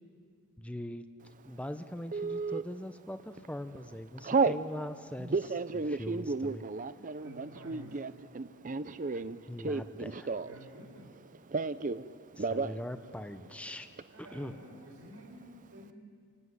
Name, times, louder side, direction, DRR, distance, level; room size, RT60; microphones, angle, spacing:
voice 1, 0.6-1.0 1.4-6.6 9.1-10.3 12.4-13.9 14.2-14.5, left 1 dB, 5° left, 9 dB, 0.7 m, -41 dB
Telephone, 2.1-2.6 3.2-3.5 3.7-4.6 5.2-10.7 10.9-12.0 12.3-12.8 13.1-13.2 13.4-14.0, right 4 dB, 35° right, 0.6 m, -32 dB
voice 2, 7.2-8.0 10.4-11.1 14.1-16.1, equal, 75° right, -2 dB, 4.3 m, -50 dB
29.0 x 17.0 x 9.6 m, 2.2 s
head